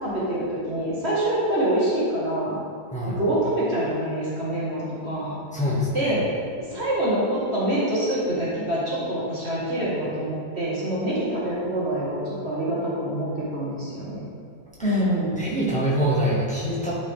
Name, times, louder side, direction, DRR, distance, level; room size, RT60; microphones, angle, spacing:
voice 1, 0.0-2.6 3.0-5.3 5.9-6.3 6.7-14.2 14.8-15.4, right 1 dB, 35° right, -8 dB, 1.7 m, -25 dB
voice 2, 5.5-6.2 14.8-15.0 15.3-16.9, equal, 5° left, -7 dB, 1.4 m, -25 dB
11.0 x 4.8 x 3.5 m, 2.2 s
omnidirectional pair, 2.2 m